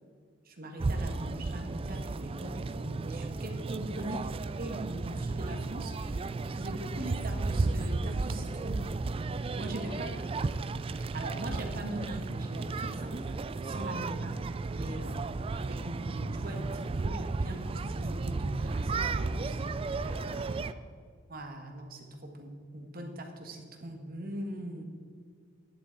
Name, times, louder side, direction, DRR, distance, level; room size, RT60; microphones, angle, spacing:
voice 1, 0.4-4.2 4.6-6.2 6.5-8.8 9.5-10.1 10.9-13.4 13.6-14.4 14.7-19.8 21.3-24.8, right 1 dB, 50° right, 3 dB, 1.5 m, -41 dB
sound 1, 0.8-20.7, right 3 dB, 30° right, 0.4 m, -34 dB
voice 2, 9.8-10.2 13.8-14.1 20.0-20.8, left 1 dB, 50° left, -1 dB, 2.8 m, -50 dB
12.5 x 10.5 x 4.0 m, 2.1 s
head